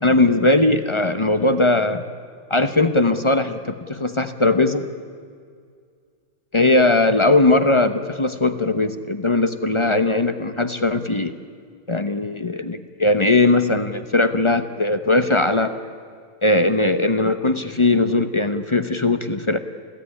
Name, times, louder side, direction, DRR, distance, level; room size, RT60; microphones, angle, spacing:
voice 1, 0.0-2.0 2.5-4.9 6.5-11.3 11.9-15.7 16.4-19.6, left 2 dB, 35° left, 9 dB, 0.5 m, -19 dB
28.0 x 16.0 x 9.8 m, 2.2 s
omnidirectional pair, 2.0 m